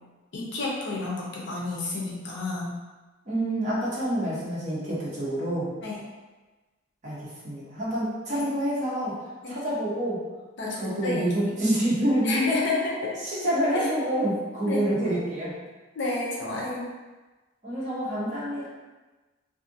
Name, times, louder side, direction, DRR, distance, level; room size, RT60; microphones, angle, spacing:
voice 1, 0.3-2.8 5.8-6.0 8.3-8.4 9.4-9.6 10.6-11.6 12.2-13.2 13.7-13.9 14.6-14.8 15.9-16.9, left 2 dB, 60° left, -3 dB, 0.6 m, -30 dB
voice 2, 3.3-5.7 7.0-9.2 9.5-10.2 10.7-12.4 13.2-15.5 17.6-18.7, right 1 dB, 40° right, -7 dB, 0.9 m, -27 dB
2.5 x 2.5 x 2.6 m, 1.2 s
head